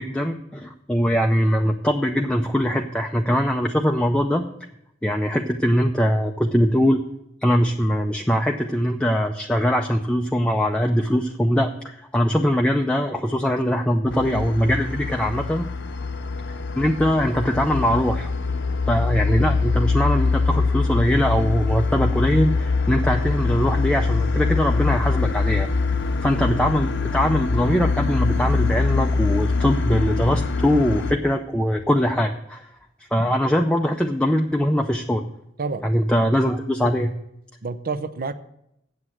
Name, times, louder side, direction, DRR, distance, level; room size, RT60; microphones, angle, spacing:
voice 1, 0.0-4.5 5.0-7.0 7.4-15.7 16.5-18.3 18.9-25.7 26.2-32.7 33.1-35.3 35.8-37.1, equal, 5° left, 2 dB, 0.5 m, -22 dB
sound 1, 14.1-31.1, left 4 dB, 65° left, 0.7 m, -23 dB
voice 2, 37.6-38.3, right 4 dB, 50° right, 12 dB, 0.6 m, -28 dB
8.0 x 7.3 x 7.8 m, 0.79 s
head